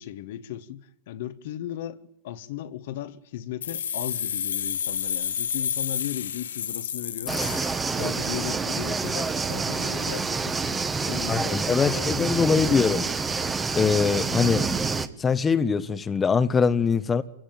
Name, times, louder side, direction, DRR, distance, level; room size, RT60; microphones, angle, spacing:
voice 1, 0.0-7.4 7.9-10.6 11.0-12.9, left 12 dB, 65° left, 1.4 m, -36 dB
sound 1, 3.6-8.4, left 9 dB, 80° left, 1.0 m, -30 dB
sound 2, 7.3-15.1, right 4 dB, 15° right, 1.4 m, -27 dB
sound 3, 7.6-8.9 9.4-9.5 9.7-9.8 10.9-11.8 12.5-12.7, right 9 dB, 35° right, 1.5 m, -42 dB
voice 2, 11.3-13.1 13.7-14.6 15.2-17.2, left 5 dB, 20° left, 1.1 m, -22 dB
26.5 x 17.0 x 9.2 m
hypercardioid pair, 110°, 0 cm